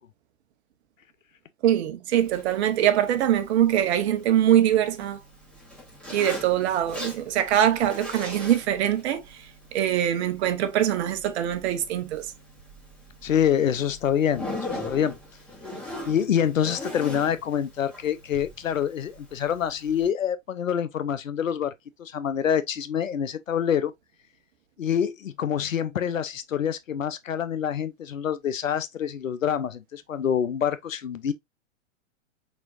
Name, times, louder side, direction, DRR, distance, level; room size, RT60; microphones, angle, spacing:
voice 1, 1.6-5.2 6.1-9.2 9.7-12.3, right 11 dB, 55° right, 1.1 m, -23 dB
Zipper (clothing), 2.1-20.1, left 1 dB, 5° left, 2.4 m, -41 dB
voice 2, 13.2-14.5 14.9-15.2 16.1-21.7 22.0-23.9 24.8-31.3, left 8 dB, 90° left, 0.7 m, -26 dB
4.4 x 4.3 x 2.5 m
hypercardioid pair, 115°, 38 cm